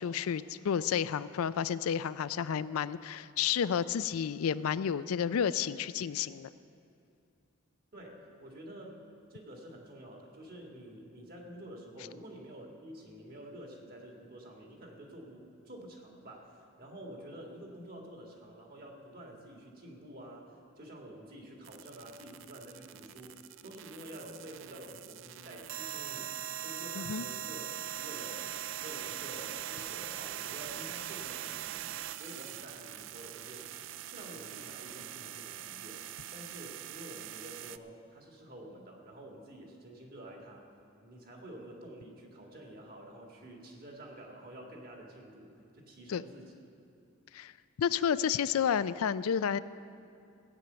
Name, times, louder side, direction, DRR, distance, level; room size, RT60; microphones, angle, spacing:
voice 1, 0.0-6.5 27.0-27.2 46.1-46.2 47.3-47.5 47.8-49.6, left 8 dB, 80° left, 15 dB, 0.4 m, -31 dB
voice 2, 7.9-9.0 9.3-20.5 20.8-26.3 26.6-27.7 28.0-28.5 28.8-31.8 32.1-33.7 34.0-36.0 36.3-40.7 41.0-46.5, right 1 dB, 45° right, 0 dB, 2.1 m, -49 dB
sound 1, 21.6-37.8, right 11 dB, 60° right, 0.4 m, -42 dB
16.0 x 9.0 x 6.9 m, 2.6 s
head